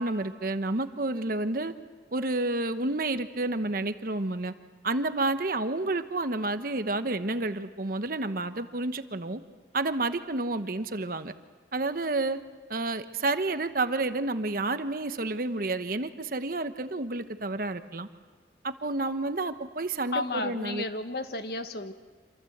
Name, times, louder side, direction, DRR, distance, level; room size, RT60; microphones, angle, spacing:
voice 1, 0.0-1.7 2.1-4.5 4.8-9.4 9.7-11.3 11.7-12.4 12.7-18.1 18.6-20.8, right 2 dB, 55° right, 10 dB, 1.1 m, -30 dB
voice 2, 20.1-21.9, left 2 dB, 60° left, 8 dB, 1.5 m, -32 dB
27.5 x 27.0 x 8.0 m, 1.4 s
head